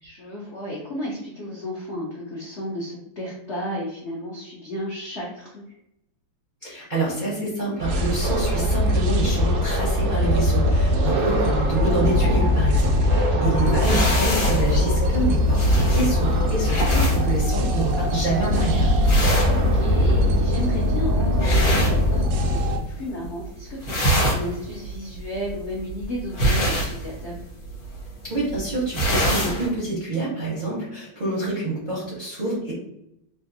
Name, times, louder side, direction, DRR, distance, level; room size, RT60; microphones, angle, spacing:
voice 1, 0.0-5.7 13.3-13.8 19.5-22.2 22.5-27.4, left 1 dB, 75° left, -5 dB, 0.6 m, -33 dB
voice 2, 6.6-15.6 15.9-18.9 28.2-32.7, right 2 dB, 50° right, -8 dB, 0.5 m, -27 dB
sound 1, 7.8-22.8, left 1 dB, 90° right, 0.7 m, -21 dB
sound 2, 13.8-22.7 23.0-23.4 23.7-29.7, right 1 dB, 50° left, 1.3 m, -26 dB
3.3 x 2.5 x 2.6 m, 0.80 s
omnidirectional pair, 2.1 m